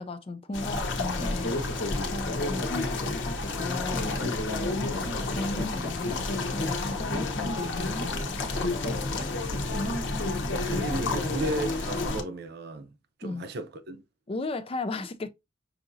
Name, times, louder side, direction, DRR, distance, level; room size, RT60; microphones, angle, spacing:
voice 1, 0.0-9.2 13.2-13.5 14.3-15.3, left 2 dB, 30° left, 0.4 m, -37 dB
sound 1, 0.5-12.2, left 2 dB, 65° left, 0.9 m, -30 dB
voice 2, 10.5-12.9 13.2-14.0, right 2 dB, 55° right, 0.7 m, -34 dB
5.8 x 2.7 x 2.6 m
head